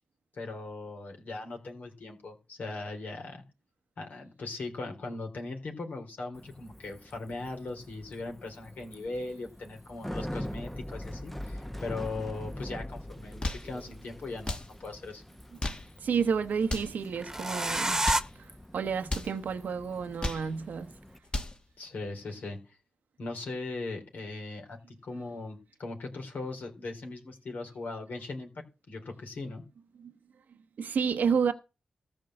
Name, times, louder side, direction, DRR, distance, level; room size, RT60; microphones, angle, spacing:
voice 1, 0.3-3.4 4.0-15.2 21.8-22.6 23.2-29.6, left 3 dB, 70° left, 3.6 m, -39 dB
Bicycle, 6.4-21.2, equal, 5° left, 0.9 m, -44 dB
sound 1, 12.0-12.1 13.3-14.4 17.2-18.2, right 1 dB, 15° right, 1.4 m, -29 dB
sound 2, 13.2-13.7 14.4-14.7 15.4-15.9 16.6-17.0 17.8-18.3 19.0-19.3 20.0-20.5 21.1-21.6, left 2 dB, 35° left, 1.8 m, -34 dB
voice 2, 16.0-18.0 18.4-20.9 30.0-30.1 30.8-31.5, right 6 dB, 75° right, 0.9 m, -30 dB
14.0 x 5.2 x 7.7 m
cardioid pair, 50°, 3 cm